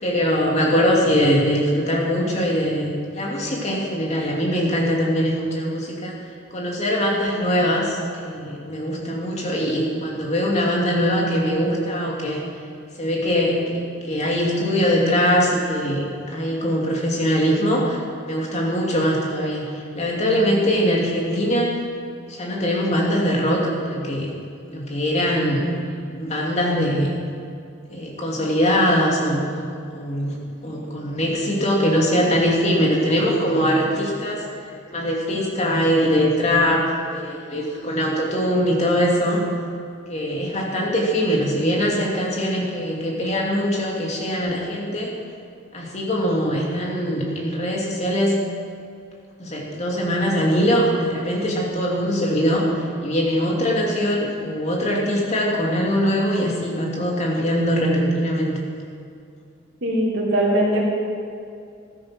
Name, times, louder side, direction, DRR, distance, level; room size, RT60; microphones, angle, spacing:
voice 1, 0.0-6.1 6.5-12.4 13.0-18.0 18.2-19.7 19.9-21.7 22.3-24.3 24.7-25.7 26.2-27.1 27.9-30.4 30.6-34.5 34.9-39.4 40.1-45.1 45.7-48.4 49.4-52.7 53.0-58.6, equal, 35° left, -2 dB, 2.8 m, -22 dB
voice 2, 59.8-60.8, right 1 dB, 55° right, -8 dB, 3.3 m, -20 dB
14.5 x 13.0 x 6.1 m, 2.4 s
head